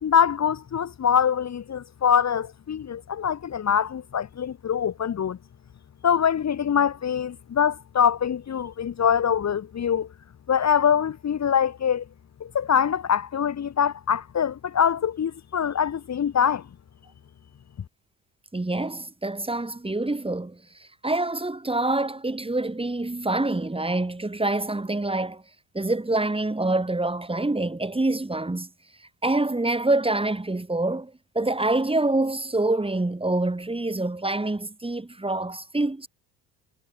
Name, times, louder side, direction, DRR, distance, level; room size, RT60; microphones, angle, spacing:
voice 1, 0.0-5.4 6.0-10.1 10.5-12.0 12.4-16.6, left 8 dB, 35° left, 2.2 m, -24 dB
voice 2, 18.5-25.4 25.7-28.7 29.2-36.1, right 2 dB, 10° right, 6.9 m, -26 dB
hypercardioid pair, 60°, 44 cm